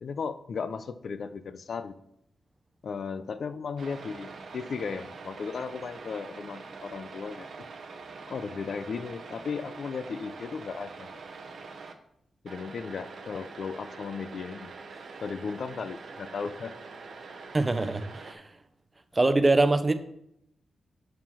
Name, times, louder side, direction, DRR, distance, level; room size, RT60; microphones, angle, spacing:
voice 1, 0.0-2.0 2.8-7.5 8.3-11.1 12.4-14.7 15.2-16.7, left 5 dB, 65° left, 11 dB, 0.5 m, -36 dB
sound 1, 3.8-11.9 12.5-18.3, right 4 dB, 70° right, 0.8 m, -44 dB
voice 2, 17.5-18.5 19.1-19.9, right 2 dB, 25° right, 10 dB, 0.6 m, -23 dB
5.6 x 4.8 x 5.7 m, 0.76 s
cardioid pair, 75°, 0 cm